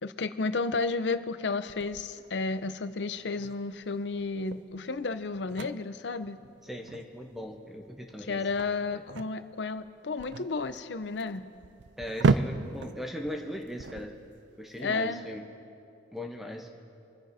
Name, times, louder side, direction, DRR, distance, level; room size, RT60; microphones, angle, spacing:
voice 1, 0.0-6.4 8.3-11.4 14.8-15.2, left 3 dB, 65° left, 11 dB, 0.6 m, -32 dB
sound 1, 1.7-14.8, right 4 dB, 70° right, 0.4 m, -35 dB
voice 2, 6.6-8.4 8.9-9.0 12.0-14.1 14.6-15.4 16.1-16.7, equal, ahead, 2 dB, 0.8 m, -39 dB
28.5 x 10.0 x 2.7 m, 2.5 s
head